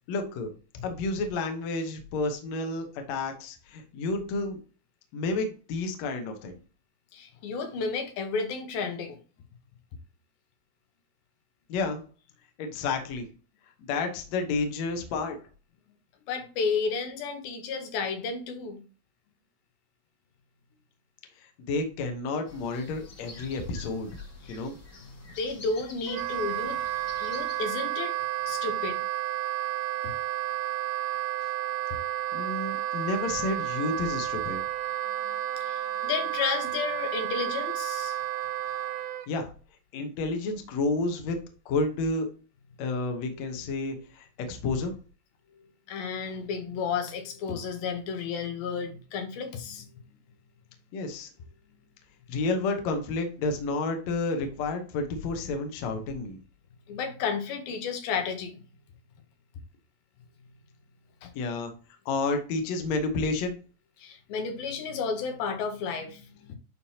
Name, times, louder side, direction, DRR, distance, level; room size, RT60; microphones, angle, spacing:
voice 1, 0.1-0.5 0.8-4.6 5.1-6.6 11.7-12.0 12.6-13.3 13.8-15.4 21.4-24.1 24.5-24.8 32.3-34.6 39.3-39.5 39.9-41.4 41.7-42.3 42.8-45.0 50.9-51.3 52.3-56.4 61.3-61.7 62.1-63.6, left 3 dB, 60° left, 2.0 m, -30 dB
voice 2, 7.1-9.2 16.3-18.8 24.4-24.6 25.3-26.8 27.2-28.2 28.5-29.0 30.0-30.1 35.1-38.2 45.9-49.9 56.9-58.6 61.2-61.3 64.0-66.6, left 5 dB, 80° left, 2.8 m, -32 dB
sound 1, 22.5-27.7, left 2 dB, 40° left, 1.2 m, -49 dB
Wind instrument woodwind instrument, 26.1-39.3, right 13 dB, 85° right, 2.5 m, -31 dB
11.0 x 3.8 x 2.8 m
omnidirectional pair, 4.3 m